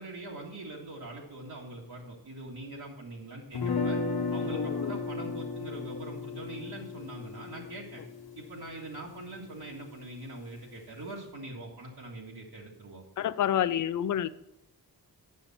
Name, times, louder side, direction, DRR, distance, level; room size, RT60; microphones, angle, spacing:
voice 1, 0.0-4.0 4.3-8.0 8.4-13.0, right 2 dB, 75° right, -4 dB, 1.8 m, -43 dB
sound 1, 3.5-9.5, left 4 dB, 70° left, 1.0 m, -34 dB
voice 2, 4.5-5.0 13.2-14.3, left 10 dB, 50° left, 14 dB, 0.4 m, -29 dB
9.4 x 7.0 x 4.2 m, 0.84 s
wide cardioid pair, 130°, 38 cm